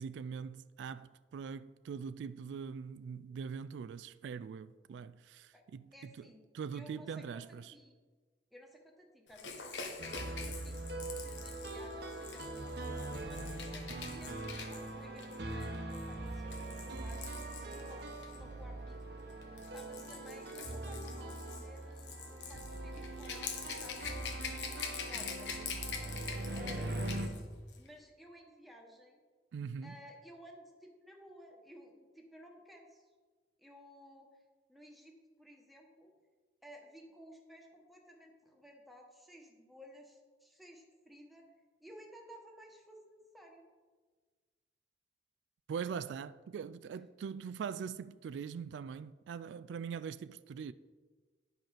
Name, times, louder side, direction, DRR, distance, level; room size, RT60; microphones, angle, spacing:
voice 1, 0.0-6.3 6.5-7.7 29.5-29.9 45.7-50.7, right 6 dB, 85° right, 0.3 m, -42 dB
voice 2, 5.9-6.4 6.7-7.9 8.5-12.6 13.1-19.0 19.7-24.7 25.0-26.0 26.5-27.5 27.7-29.2 29.8-33.1 33.6-34.4 34.7-36.1 36.6-41.4 41.8-43.6, equal, ahead, 1.2 m, -56 dB
Rattle / Rattle (instrument), 9.3-18.4 19.3-27.4 27.7-27.9, left 6 dB, 85° left, 1.2 m, -45 dB
sound 1, 10.0-27.3, right 2 dB, 65° right, 1.0 m, -42 dB
10.5 x 5.4 x 5.7 m
head